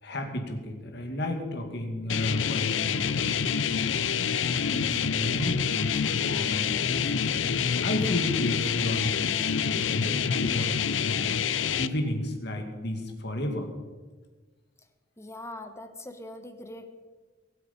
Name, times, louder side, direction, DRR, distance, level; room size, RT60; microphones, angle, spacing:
voice 1, 0.0-4.1 4.4-11.4 11.8-13.7, left 1 dB, 60° left, 4 dB, 2.5 m, -33 dB
sound 1, 2.1-11.9, left 7 dB, 80° left, 0.6 m, -27 dB
voice 2, 15.2-17.0, left 1 dB, 15° left, 7 dB, 1.3 m, -42 dB
22.5 x 8.4 x 5.5 m, 1.4 s
head